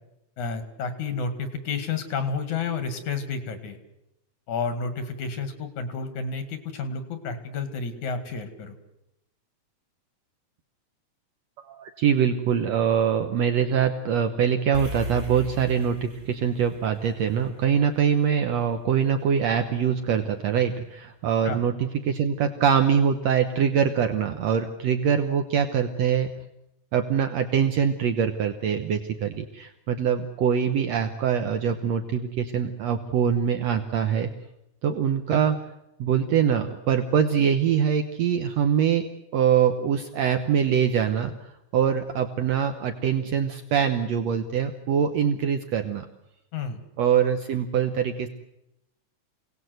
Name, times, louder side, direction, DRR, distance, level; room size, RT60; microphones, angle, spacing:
voice 1, 0.4-3.8 4.5-8.8 21.5-21.6 46.5-46.8, left 4 dB, 75° left, 9 dB, 3.6 m, -30 dB
voice 2, 11.7-26.3 26.9-34.3 34.8-35.6 36.0-39.1 39.3-41.3 41.7-46.1 47.0-48.3, right 8 dB, 65° right, 7 dB, 2.1 m, -23 dB
sound 1, 14.7-19.2, equal, 20° right, 1.8 m, -39 dB
27.5 x 18.5 x 7.9 m, 0.85 s
omnidirectional pair, 3.4 m